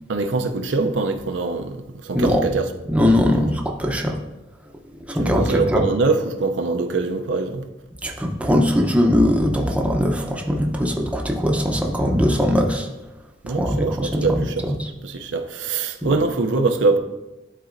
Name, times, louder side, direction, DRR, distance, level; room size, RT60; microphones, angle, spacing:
voice 1, 0.1-2.7 5.2-7.6 13.4-14.6 15.0-17.0, right 3 dB, 70° right, 6 dB, 0.5 m, -23 dB
voice 2, 2.9-4.2 5.1-5.8 8.0-12.9 13.5-14.9 16.0-16.1, equal, 5° right, 0 dB, 0.7 m, -20 dB
11.5 x 4.1 x 2.5 m, 1.0 s
head